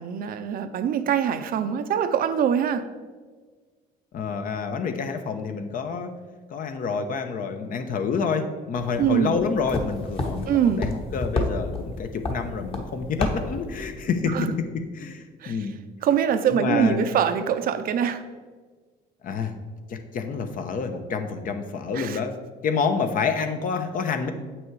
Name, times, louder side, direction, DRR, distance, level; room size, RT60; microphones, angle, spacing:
voice 1, 0.0-2.8 9.0-9.4 10.5-10.8 14.3-14.5 15.4-15.7 16.0-18.2 21.9-22.2, right 8 dB, 60° right, 9 dB, 0.6 m, -23 dB
voice 2, 4.1-6.1 6.5-15.8 16.5-17.1 19.2-19.5 19.9-22.4 22.6-24.3, left 5 dB, 55° left, 7 dB, 0.9 m, -28 dB
sound 1, 8.8-14.0, left 2 dB, 35° left, 1.3 m, -31 dB
7.9 x 6.1 x 4.7 m, 1.4 s
cardioid pair, 110°, 17 cm